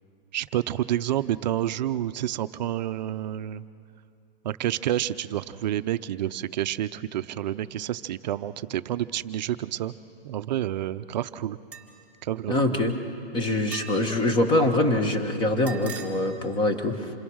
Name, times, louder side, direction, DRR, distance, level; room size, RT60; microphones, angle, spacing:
voice 1, 0.3-3.6 4.4-9.9 10.2-11.6 12.2-12.8, right 12 dB, 45° right, 13 dB, 0.6 m, -29 dB
sound 1, 11.7-12.1 13.7-14.3 15.7-16.1, right 7 dB, 5° right, 1.5 m, -40 dB
voice 2, 12.5-12.9 13.3-17.1, left 1 dB, 15° left, 6 dB, 1.4 m, -24 dB
27.5 x 22.0 x 6.3 m, 2.5 s
hypercardioid pair, 150°, 29 cm